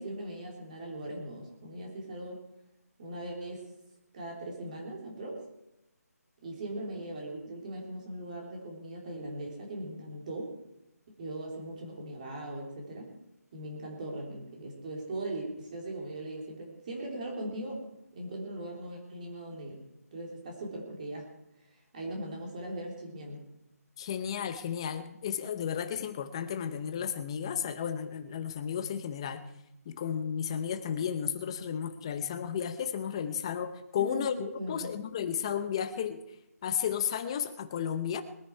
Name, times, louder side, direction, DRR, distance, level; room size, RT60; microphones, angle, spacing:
voice 1, 0.0-2.4 3.0-3.7 4.1-5.4 6.4-10.5 11.2-13.1 13.5-17.8 18.1-19.8 20.1-21.3 21.9-23.5 34.0-34.9, right 1 dB, 25° right, -1 dB, 3.2 m, -39 dB
voice 2, 24.0-29.4 29.9-36.2 36.6-38.2, left 8 dB, 20° left, 11 dB, 0.7 m, -33 dB
21.5 x 10.0 x 4.5 m, 0.85 s
figure-of-eight pair, 170°, 9 cm